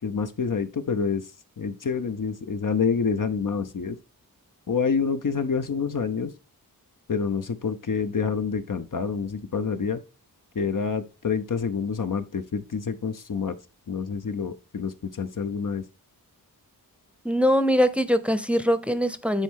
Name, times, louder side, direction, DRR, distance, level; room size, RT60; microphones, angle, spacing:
voice 1, 0.0-1.3 1.6-4.0 4.7-6.3 7.1-10.0 10.5-13.6 13.9-15.8, left 5 dB, 60° left, 0.7 m, -27 dB
voice 2, 17.2-19.4, equal, 5° right, 0.7 m, -22 dB
9.0 x 4.3 x 3.7 m
wide cardioid pair, 60°, 36 cm